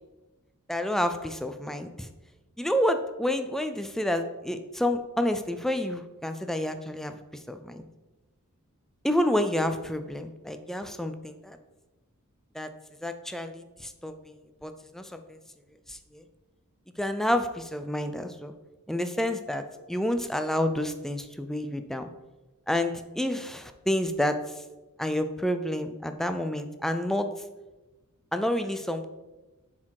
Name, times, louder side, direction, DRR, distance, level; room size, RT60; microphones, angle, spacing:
voice 1, 0.7-2.1 2.6-7.2 7.5-7.9 9.0-11.6 12.6-12.7 13.0-14.4 14.6-15.2 15.9-16.2 17.0-18.5 18.9-22.1 22.7-24.4 25.0-27.3 28.3-29.1, left 1 dB, ahead, 8 dB, 0.4 m, -29 dB
7.0 x 4.5 x 4.7 m, 1.1 s
head